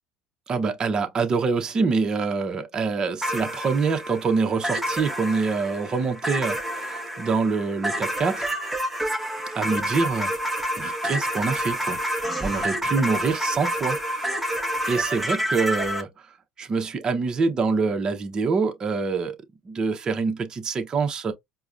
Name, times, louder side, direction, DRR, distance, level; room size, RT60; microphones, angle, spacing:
voice 1, 0.5-8.5 9.5-10.3 10.8-12.0 12.4-14.5 14.9-16.1 16.6-19.4 19.6-21.3, right 4 dB, 30° right, 0.8 m, -25 dB
sound 1, 3.2-16.0, equal, 5° right, 0.9 m, -28 dB
4.6 x 2.2 x 2.5 m
supercardioid pair, 110°, 2 cm